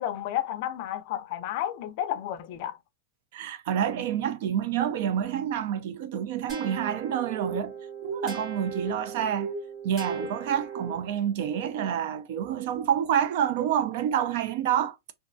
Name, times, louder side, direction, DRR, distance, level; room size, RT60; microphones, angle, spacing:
voice 1, 0.0-2.8, left 11 dB, 45° left, 0.4 m, -31 dB
voice 2, 3.3-7.7 8.0-9.5 9.8-15.0, right 9 dB, 50° right, 0.5 m, -28 dB
sound 1, 6.5-11.3, right 4 dB, 25° right, 1.6 m, -36 dB
3.2 x 2.6 x 2.5 m
supercardioid pair, 170°, 0 cm